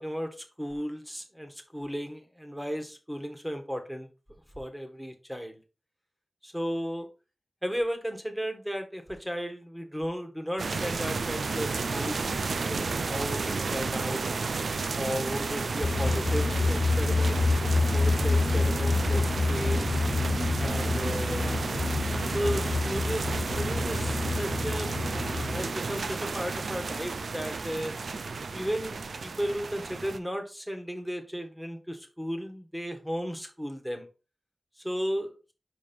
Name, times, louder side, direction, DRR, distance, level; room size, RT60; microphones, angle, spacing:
voice 1, 0.0-4.1 4.5-5.6 6.4-7.1 7.6-12.3 12.7-14.2 14.9-17.4 17.9-19.9 20.6-21.4 22.3-27.9 28.5-34.1 34.8-35.3, equal, 5° right, 5 dB, 1.5 m, -35 dB
sound 1, 10.6-30.2, right 4 dB, 85° right, 0.5 m, -32 dB
sound 2, 15.8-25.7, left 3 dB, 70° left, 0.4 m, -28 dB
5.3 x 4.8 x 4.5 m, 0.33 s
wide cardioid pair, 70°, 0 cm